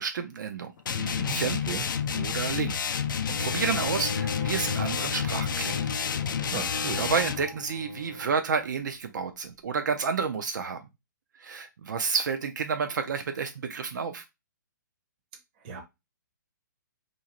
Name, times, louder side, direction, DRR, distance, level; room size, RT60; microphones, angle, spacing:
voice 1, 0.0-1.6 2.1-2.8 3.3-5.8 6.6-10.8 11.4-14.2, right 5 dB, 65° right, 0.4 m, -30 dB
sound 1, 0.9-7.5, left 7 dB, 80° left, 0.4 m, -30 dB
voice 2, 1.2-1.8 6.5-7.0 15.6-15.8, right 4 dB, 30° right, 0.7 m, -35 dB
Bowed string instrument, 3.3-8.4, left 3 dB, 45° left, 0.7 m, -38 dB
2.6 x 2.4 x 2.9 m
hypercardioid pair, 160°, 11 cm